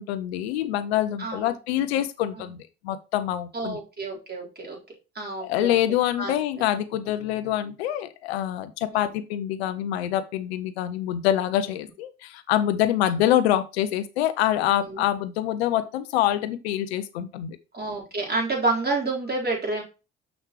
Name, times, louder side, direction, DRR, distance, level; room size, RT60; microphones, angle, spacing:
voice 1, 0.0-2.6 2.8-3.8 5.4-17.6, left 12 dB, 90° left, 12 dB, 0.5 m, -25 dB
voice 2, 1.2-1.5 2.4-2.5 3.5-4.8 5.1-6.3 8.9-9.1 14.7-15.1 17.7-19.8, right 3 dB, 30° right, -1 dB, 4.3 m, -29 dB
6.5 x 6.1 x 3.1 m, 0.30 s
hypercardioid pair, 60°, 31 cm